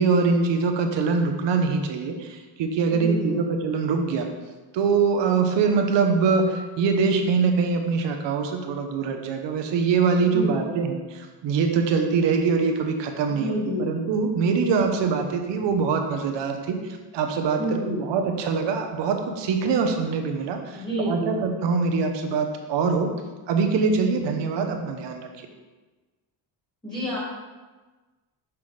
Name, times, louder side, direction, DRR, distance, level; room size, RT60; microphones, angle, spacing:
voice 1, 0.0-4.3 4.7-23.1 23.5-25.3, right 5 dB, 65° right, 4 dB, 0.9 m, -23 dB
voice 2, 2.9-3.4 10.2-10.8 13.3-13.9 17.5-18.1 20.7-21.4 26.8-27.2, equal, 10° left, -6 dB, 1.9 m, -29 dB
6.1 x 5.5 x 3.2 m, 1.3 s
cardioid pair, 145°, 46 cm